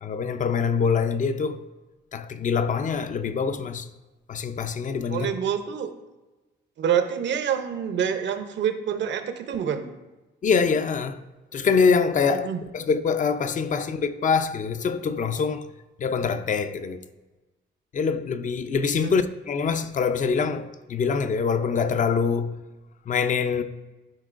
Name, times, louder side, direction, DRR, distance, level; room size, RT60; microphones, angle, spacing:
voice 1, 0.0-1.7 2.1-3.9 4.3-5.3 10.4-11.2 11.5-12.5 12.7-15.7 16.0-17.0 17.9-22.6 23.1-23.6, left 5 dB, 40° left, 0.5 m, -24 dB
voice 2, 5.1-5.9 6.8-9.9 12.3-12.6 19.0-19.1, right 8 dB, 65° right, 0.7 m, -27 dB
12.0 x 4.3 x 2.5 m
cardioid pair, 90°, 20 cm